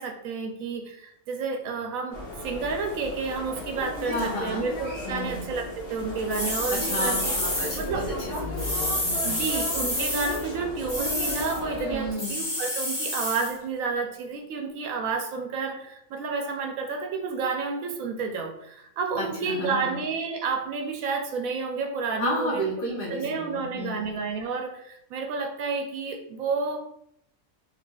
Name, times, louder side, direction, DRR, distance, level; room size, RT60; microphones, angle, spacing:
voice 1, 0.0-2.2 2.4-7.4 7.7-8.1 9.2-22.6 23.1-26.8, right 4 dB, 75° right, 3 dB, 1.0 m, -30 dB
sound 1, 2.1-12.2, left 1 dB, 60° left, 1.7 m, -35 dB
voice 2, 4.1-4.7 5.0-5.4 6.7-9.4 11.9-12.4 19.2-20.0 22.2-24.1, equal, 45° left, -5 dB, 1.1 m, -32 dB
sound 2, 6.3-7.9 8.6-10.4 10.9-11.6 12.2-13.5, left 1 dB, 15° left, 1.4 m, -29 dB
4.9 x 2.8 x 2.3 m, 0.76 s
omnidirectional pair, 1.5 m